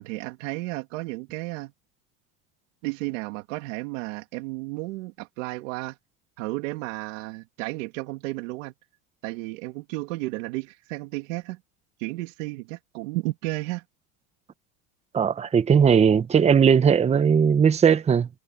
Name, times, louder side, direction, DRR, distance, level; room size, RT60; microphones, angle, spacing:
voice 1, 0.0-1.7 2.8-6.0 6.4-8.7 9.2-11.6 12.0-13.8, right 21 dB, 80° right, 2.3 m, -33 dB
voice 2, 15.1-18.3, right 7 dB, 15° right, 0.9 m, -18 dB
supercardioid pair, 140°, 38 cm